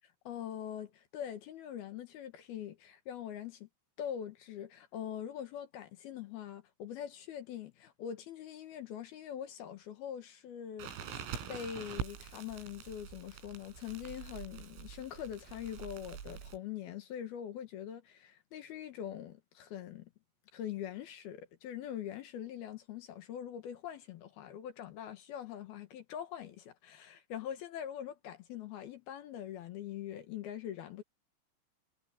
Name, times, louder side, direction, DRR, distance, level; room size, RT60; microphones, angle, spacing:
voice 1, 0.0-3.7 4.0-11.2 11.5-20.1 20.5-31.0, left 10 dB, 70° left, 2.6 m, -43 dB
Crackle, 10.8-16.6, right 8 dB, 90° right, 6.6 m, -45 dB
omnidirectional pair, 5.9 m